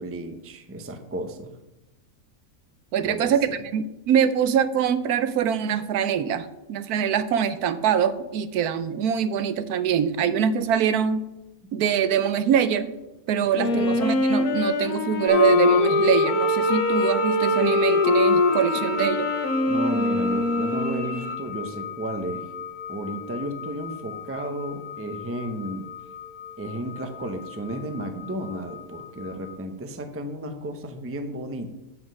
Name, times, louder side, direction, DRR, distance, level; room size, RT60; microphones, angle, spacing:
voice 1, 0.0-1.5 3.0-3.6 13.7-14.0 18.7-18.9 19.7-22.4 22.9-25.9 26.6-31.7, right 1 dB, 15° right, 6 dB, 0.4 m, -33 dB
voice 2, 2.9-11.2 11.7-13.0 13.3-19.3, right 8 dB, 80° right, 12 dB, 1.2 m, -23 dB
Wind instrument woodwind instrument, 13.5-21.2, left 2 dB, 75° left, 1.4 m, -23 dB
sound 1, 15.3-29.5, left 8 dB, 30° left, 1.8 m, -34 dB
Bowed string instrument, 16.3-21.3, right 2 dB, 50° right, 1.2 m, -36 dB
7.3 x 6.0 x 6.3 m, 0.96 s
omnidirectional pair, 1.6 m